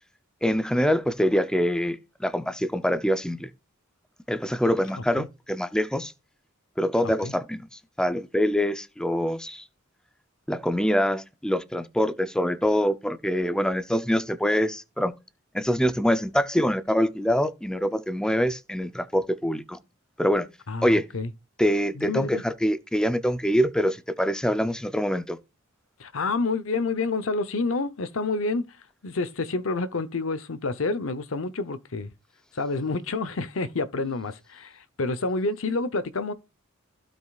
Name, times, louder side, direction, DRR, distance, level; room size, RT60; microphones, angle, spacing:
voice 1, 0.4-3.5 4.3-6.1 6.8-7.7 8.0-9.6 10.5-15.1 15.5-19.8 20.2-20.5 20.8-21.0 21.6-25.4, equal, 5° left, 0.5 m, -24 dB
voice 2, 4.9-5.3 7.0-7.3 20.7-21.3 22.0-22.4 26.0-28.8 29.0-32.1 32.5-36.3, left 3 dB, 75° left, 0.8 m, -28 dB
15.5 x 5.3 x 2.4 m
head